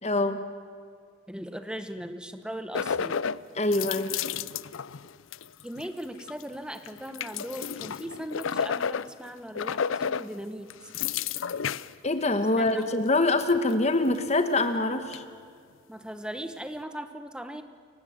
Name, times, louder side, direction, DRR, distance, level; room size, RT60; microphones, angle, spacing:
voice 1, 0.0-0.4 3.5-4.1 12.0-15.2, left 2 dB, 35° left, 9 dB, 1.1 m, -24 dB
voice 2, 1.3-3.2 5.6-10.7 12.5-12.9 15.9-17.6, equal, 5° right, 8 dB, 1.0 m, -38 dB
Brushing Teeth, 2.7-3.4 3.7-5.9 6.2-6.4 6.8-9.3 9.6-10.3 10.7-11.9 12.6-12.8 13.4-13.7 14.1-14.2 15.1-15.2, left 7 dB, 80° left, 0.5 m, -31 dB
29.0 x 15.5 x 7.4 m, 2.1 s
head